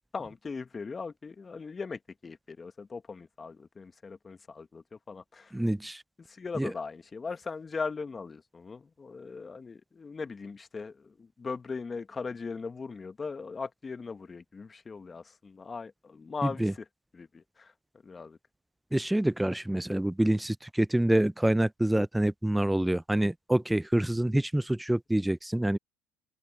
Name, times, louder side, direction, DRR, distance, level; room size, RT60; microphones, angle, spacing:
voice 1, 0.1-5.5 6.3-16.8 17.1-17.7 18.0-18.4, left 4 dB, 25° left, 1.4 m, -39 dB
voice 2, 5.5-6.0 6.6-6.7 16.4-16.7 18.9-25.8, right 1 dB, 5° right, 0.5 m, -26 dB
hypercardioid pair, 80°, 0 cm